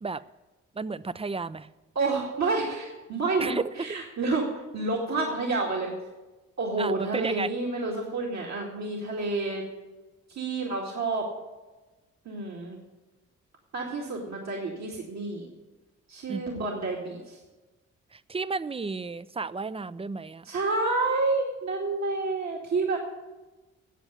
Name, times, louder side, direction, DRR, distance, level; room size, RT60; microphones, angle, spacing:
voice 1, 0.7-1.7 3.4-4.0 6.8-7.5 16.3-16.5 18.1-20.5, right 4 dB, 20° right, 17 dB, 0.5 m, -33 dB
voice 2, 2.0-5.9 6.6-9.6 10.3-11.3 12.3-12.8 13.7-15.5 16.1-17.4 20.4-23.0, right 3 dB, 60° right, -2 dB, 2.2 m, -29 dB
9.1 x 7.9 x 9.2 m, 1.2 s
supercardioid pair, 55°, 31 cm